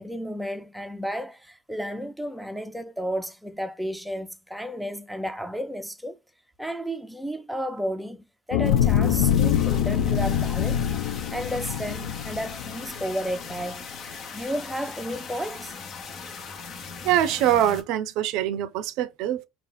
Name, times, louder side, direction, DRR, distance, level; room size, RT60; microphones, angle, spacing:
voice 1, 0.0-6.2 6.6-10.9 11.3-15.8, equal, ahead, 0.6 m, -33 dB
sound 1, 8.5-13.0 13.5-13.6, left 9 dB, 80° left, 0.4 m, -24 dB
sound 2, 8.6-17.8, left 5 dB, 45° left, 0.9 m, -39 dB
voice 2, 17.0-19.5, right 12 dB, 70° right, 0.4 m, -24 dB
3.5 x 2.4 x 3.9 m
hypercardioid pair, 80°, 0 cm